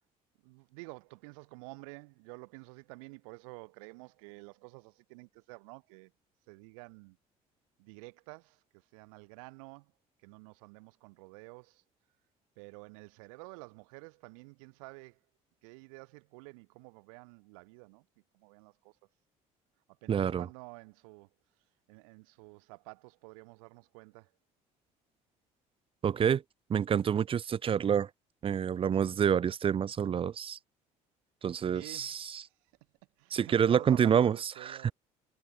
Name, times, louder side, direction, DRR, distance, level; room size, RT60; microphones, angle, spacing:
voice 1, 0.4-6.1 6.5-7.2 7.8-9.9 10.2-11.8 12.6-15.2 15.6-18.1 18.3-19.0 20.0-21.3 21.9-24.3 31.7-32.5 33.2-34.9, right 30 dB, 85° right, 3.0 m, -50 dB
voice 2, 20.1-20.5 26.0-26.4 26.7-28.1 28.4-30.6 31.4-32.4 33.3-34.9, right 8 dB, 30° right, 0.4 m, -28 dB
supercardioid pair, 70°, 17 cm